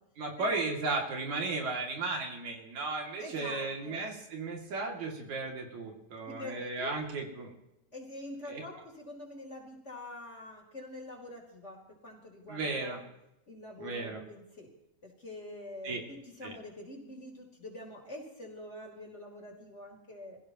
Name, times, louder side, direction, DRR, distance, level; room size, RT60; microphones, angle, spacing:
voice 1, 0.2-7.5 8.5-8.6 12.5-13.0 13.8-14.2 15.8-16.0 16.4-16.6, right 3 dB, 75° right, 1 dB, 4.0 m, -35 dB
voice 2, 3.2-4.0 6.3-6.9 7.9-13.0 13.5-14.7 15.0-20.4, left 1 dB, 20° left, -2 dB, 4.4 m, -45 dB
27.5 x 16.0 x 3.0 m, 0.86 s
omnidirectional pair, 3.3 m